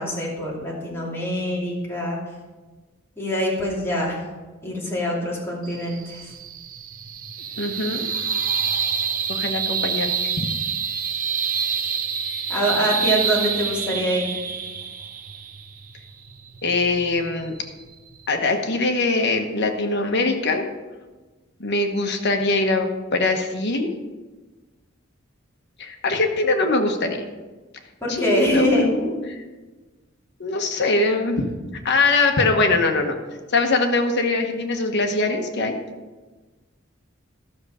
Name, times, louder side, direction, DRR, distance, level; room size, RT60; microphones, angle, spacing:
voice 1, 0.0-2.2 3.2-4.2 4.6-6.3 12.5-14.4 28.0-28.9, equal, 10° left, -6 dB, 2.8 m, -24 dB
sound 1, 5.6-18.3, right 7 dB, 45° right, 0.7 m, -27 dB
voice 2, 7.6-8.1 9.3-10.5 16.6-17.5 18.3-20.7 21.6-23.9 25.8-27.2 28.1-29.4 30.4-31.6 31.8-33.2 33.5-35.8, left 3 dB, 55° left, 4 dB, 1.1 m, -22 dB
12.5 x 6.6 x 5.0 m, 1.3 s
head